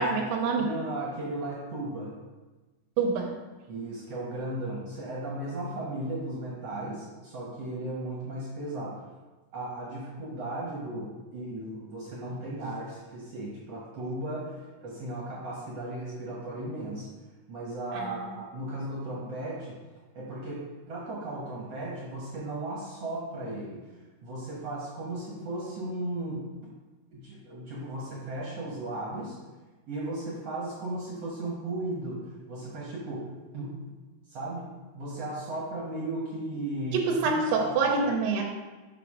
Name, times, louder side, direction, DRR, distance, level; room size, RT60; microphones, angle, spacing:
voice 1, 0.0-0.7 3.0-3.3 18.0-18.3 36.9-38.4, right 4 dB, 80° right, 0 dB, 2.4 m, -26 dB
voice 2, 0.6-2.1 3.7-9.1 9.5-17.1 17.5-19.8 20.1-23.8 24.2-26.5 27.1-29.4 29.9-33.9 34.3-34.7 35.0-37.7, right 1 dB, 60° right, -5 dB, 1.8 m, -36 dB
6.0 x 5.8 x 4.8 m, 1.2 s
omnidirectional pair, 4.2 m